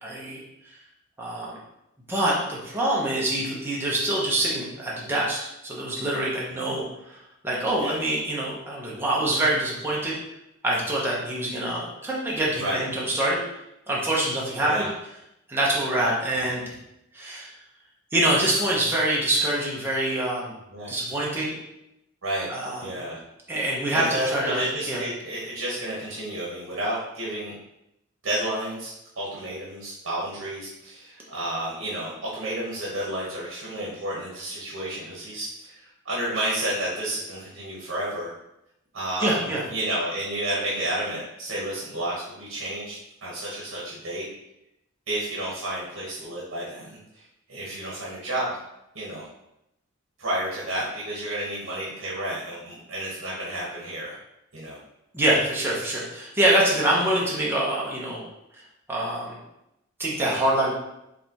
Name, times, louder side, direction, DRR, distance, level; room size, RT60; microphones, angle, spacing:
voice 1, 0.0-0.4 1.2-1.5 2.1-6.8 7.4-10.2 10.6-13.4 13.9-14.9 15.5-16.6 17.1-17.5 18.1-20.5 20.9-21.6 22.5-23.1 23.5-25.0 39.2-39.6 55.1-58.2 58.9-59.4 60.0-60.7, right 1 dB, 10° right, -5 dB, 0.9 m, -25 dB
voice 2, 6.5-6.8 7.8-8.0 12.6-12.8 14.6-14.9 20.7-20.9 22.2-22.5 22.8-23.2 23.9-27.5 28.2-38.3 38.9-44.2 45.1-47.2 47.5-48.5 48.9-49.3 50.2-54.1 54.5-54.8, right 1 dB, 65° right, -6 dB, 1.2 m, -31 dB
4.8 x 3.4 x 2.9 m, 0.85 s
head